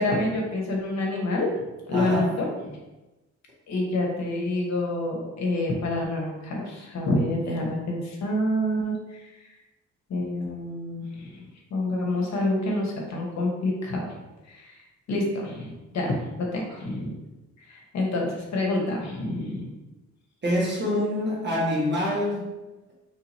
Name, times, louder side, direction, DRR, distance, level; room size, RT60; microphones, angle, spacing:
voice 1, 0.0-1.5 1.9-2.8 3.7-9.3 10.1-11.4 11.7-14.0 14.5-14.8 15.1-17.2 17.7-19.7, left 1 dB, 65° left, -1 dB, 1.1 m, -27 dB
voice 2, 1.9-2.3 20.4-22.5, left 1 dB, 35° right, -4 dB, 1.4 m, -25 dB
3.3 x 2.8 x 4.2 m, 1.1 s
cardioid pair, 90°, 30 cm